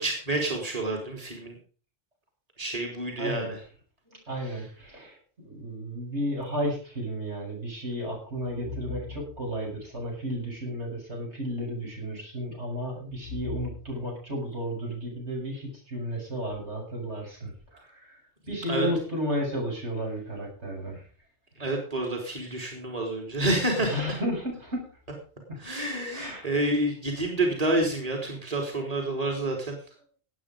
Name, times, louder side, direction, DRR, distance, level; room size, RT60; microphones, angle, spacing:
voice 1, 0.0-1.6 2.6-3.6 4.4-4.6 18.7-18.9 21.6-24.2 25.6-29.8, right 1 dB, 35° right, 2 dB, 3.6 m, -28 dB
voice 2, 3.2-3.6 4.1-18.2 18.5-21.0 23.8-24.8 25.5-25.6 26.1-26.5, equal, 80° right, -1 dB, 7.5 m, -33 dB
18.0 x 8.7 x 5.1 m, 0.40 s
omnidirectional pair, 1.1 m